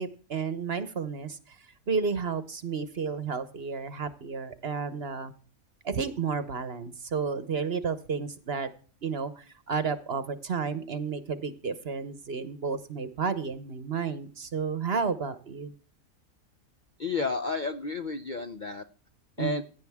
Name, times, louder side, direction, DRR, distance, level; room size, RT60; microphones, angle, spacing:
voice 1, 0.0-1.6 1.9-5.3 5.8-8.7 9.0-15.7 19.4-19.6, right 5 dB, 50° right, 12 dB, 1.1 m, -32 dB
voice 2, 17.0-18.8 19.4-19.6, left 3 dB, 45° left, 7 dB, 0.7 m, -31 dB
16.0 x 10.5 x 3.5 m, 0.40 s
omnidirectional pair, 1.5 m